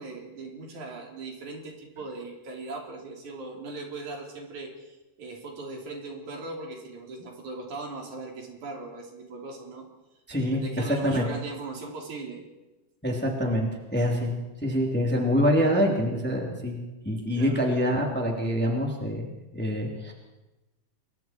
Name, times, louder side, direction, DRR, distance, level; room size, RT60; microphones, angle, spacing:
voice 1, 0.0-9.9 10.5-12.5 17.3-17.6, right 3 dB, 65° right, 1 dB, 4.7 m, -39 dB
voice 2, 10.3-10.6 10.9-11.2 13.0-14.3 14.6-16.8 17.0-20.1, equal, 5° left, 0 dB, 2.9 m, -25 dB
30.0 x 22.0 x 4.6 m, 1.1 s
omnidirectional pair, 3.7 m